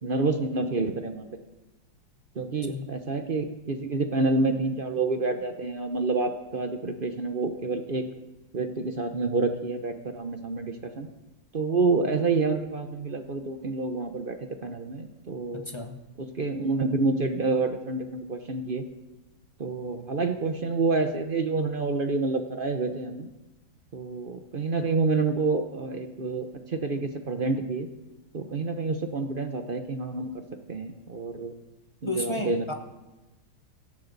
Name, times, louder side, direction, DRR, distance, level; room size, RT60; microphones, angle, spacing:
voice 1, 0.0-1.3 2.4-8.0 8.5-11.1 11.5-14.4 14.6-15.7 16.2-18.9 19.6-23.3 23.9-27.9 28.3-30.4 30.7-31.5 32.0-32.7, right 3 dB, 50° right, 7 dB, 0.6 m, -28 dB
voice 2, 15.5-16.0 32.1-32.7, left 2 dB, 35° left, 5 dB, 0.4 m, -32 dB
17.5 x 14.5 x 4.0 m, 1.1 s
omnidirectional pair, 2.2 m